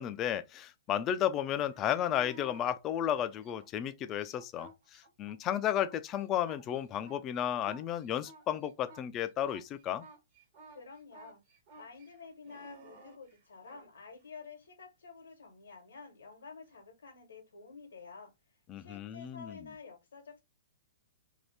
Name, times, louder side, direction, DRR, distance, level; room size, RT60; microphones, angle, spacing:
voice 1, 0.0-10.1 18.7-19.6, left 10 dB, 30° left, 0.4 m, -33 dB
sound 1, 1.4-2.7 3.3-5.4 5.7-13.9 16.7-16.8, right 2 dB, 50° right, 1.3 m, -55 dB
voice 2, 10.7-11.4 11.7-20.4, left 5 dB, 80° left, 1.0 m, -50 dB
2.7 x 2.4 x 3.2 m
hypercardioid pair, 125°, 0 cm